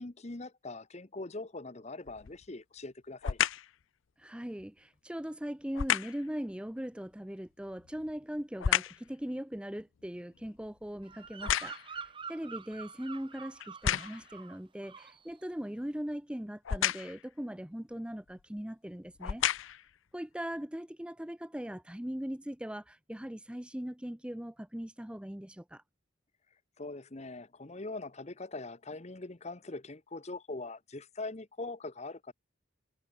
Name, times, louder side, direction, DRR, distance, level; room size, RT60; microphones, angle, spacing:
voice 1, 0.0-3.4 26.8-32.3, left 2 dB, 30° left, 0.9 m, -42 dB
sound 1, 2.1-2.5 3.2-3.7 5.7-6.3 7.7-9.1 9.6-12.1 12.7-12.8 13.6-14.3 16.7-17.3 18.3-18.4 19.1-19.9 20.5-20.6, left 9 dB, 65° left, 0.5 m, -32 dB
voice 2, 4.2-19.8 20.1-25.8, equal, 5° right, 0.5 m, -40 dB
Bird vocalization bird call bird song, 11.0-14.6 14.8-15.3, right 5 dB, 25° right, 1.2 m, -46 dB
head